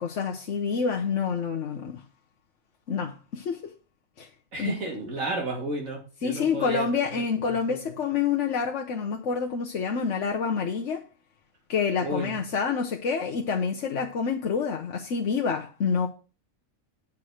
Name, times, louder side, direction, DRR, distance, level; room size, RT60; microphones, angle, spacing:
voice 1, 0.0-2.0 2.9-3.7 4.2-4.3 4.6-4.7 6.2-11.0 11.7-16.1, left 6 dB, 60° left, 1.2 m, -27 dB
voice 2, 4.5-7.9 12.0-12.4, right 2 dB, 70° right, 2.7 m, -33 dB
8.6 x 4.8 x 6.3 m
omnidirectional pair, 1.4 m